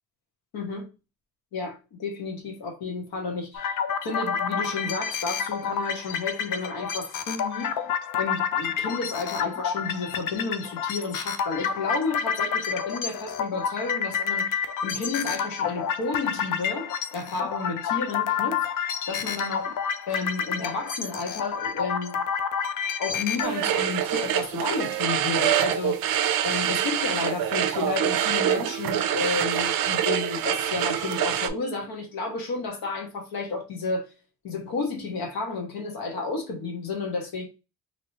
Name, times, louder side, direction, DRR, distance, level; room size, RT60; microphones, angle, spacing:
voice 1, 0.5-0.9 1.5-3.8 4.0-7.8 8.2-19.7 20.1-22.2 23.0-26.1 26.4-34.1 34.4-37.4, left 3 dB, 75° left, 1.2 m, -32 dB
sound 1, 3.5-23.5, left 7 dB, 60° left, 0.5 m, -29 dB
sound 2, 23.4-31.5, right 10 dB, 65° right, 0.5 m, -25 dB
3.1 x 2.8 x 2.8 m
cardioid pair, 135°, 36 cm